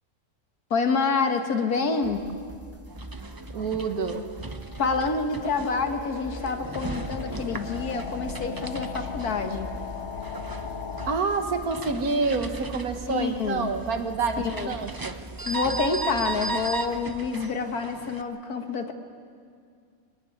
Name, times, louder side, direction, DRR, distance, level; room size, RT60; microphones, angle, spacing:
voice 1, 0.7-2.2 4.8-9.7 13.1-13.7 14.4-14.7 15.5-18.9, left 4 dB, 80° left, 6 dB, 1.9 m, -27 dB
sound 1, 2.0-17.5, right 1 dB, 10° right, 1.1 m, -43 dB
sound 2, 2.9-18.2, right 3 dB, 25° right, 0.4 m, -37 dB
voice 2, 3.5-4.3 11.1-15.2, right 4 dB, 75° right, 6 dB, 2.0 m, -28 dB
sound 3, 4.5-11.2, left 8 dB, 55° left, 1.0 m, -38 dB
23.5 x 17.5 x 9.9 m, 2.2 s
omnidirectional pair, 1.6 m